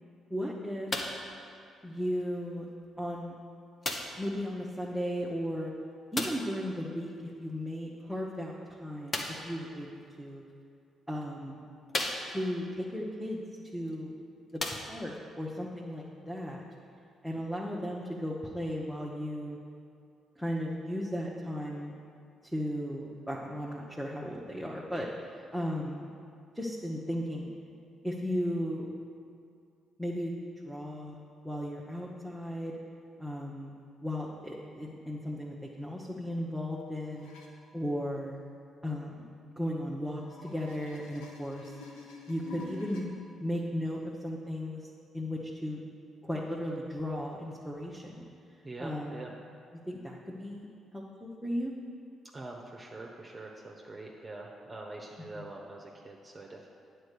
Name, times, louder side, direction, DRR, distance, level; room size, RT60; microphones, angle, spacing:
voice 1, 0.3-0.9 1.8-2.6 3.0-3.3 4.1-5.7 6.1-9.9 10.2-10.4 11.1-11.6 12.3-13.4 13.7-14.1 14.5-14.6 14.9-16.6 17.2-19.6 20.4-21.9 22.4-26.0 26.5-27.5 28.0-28.9 30.0-30.3 30.6-31.2 31.4-32.8 33.2-33.7 34.0-37.3 37.7-38.4 38.8-39.2 39.6-41.7 42.3-43.1 43.4-44.8 45.1-45.8 46.2-48.3 48.8-49.2 49.9-50.7 50.9-51.7 55.3-55.4, equal, ahead, -4 dB, 1.1 m, -35 dB
sound 1, 0.9-1.3 2.2-2.3 3.8-4.3 6.1-6.5 9.1-9.5 10.5-10.6 11.2-11.3 11.9-12.6 13.9-14.0 14.5-15.2 16.1-16.2, left 2 dB, 40° left, 1.1 m, -35 dB
sound 2, 37.2-37.5 40.1-43.0 43.9-44.0, left 3 dB, 80° left, 1.1 m, -47 dB
voice 2, 48.6-49.3 52.3-56.7, right 2 dB, 25° right, -1 dB, 0.9 m, -44 dB
9.3 x 4.5 x 6.7 m, 2.4 s
hypercardioid pair, 45°, 0 cm